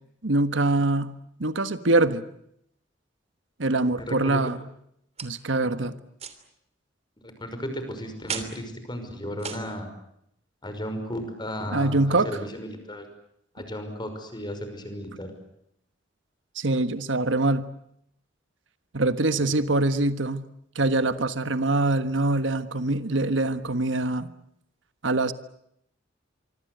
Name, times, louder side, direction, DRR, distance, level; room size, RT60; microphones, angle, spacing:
voice 1, 0.2-2.2 3.6-4.6 5.2-6.0 11.7-12.3 16.5-17.7 18.9-20.5 20.7-24.3 25.0-25.3, right 2 dB, 85° right, 11 dB, 1.5 m, -24 dB
voice 2, 4.0-4.4 7.2-9.9 10.6-13.1 13.5-15.3 19.3-19.5, equal, 25° left, 8 dB, 5.8 m, -35 dB
sound 1, 5.2-5.5 6.2-6.4 8.3-8.6 9.4-9.7, right 6 dB, 35° right, 3.1 m, -34 dB
25.0 x 25.0 x 8.1 m, 0.74 s
head